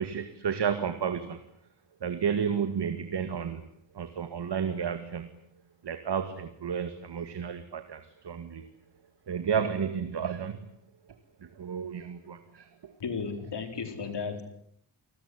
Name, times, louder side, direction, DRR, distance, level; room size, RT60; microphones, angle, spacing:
voice 1, 0.0-1.4 2.0-3.6 3.9-5.3 5.8-8.7 9.3-10.7 11.4-12.9, right 7 dB, 60° right, 9 dB, 2.2 m, -32 dB
voice 2, 13.0-14.4, left 5 dB, 65° left, 7 dB, 4.7 m, -34 dB
30.0 x 20.0 x 9.8 m, 0.72 s
wide cardioid pair, 155°, 45 cm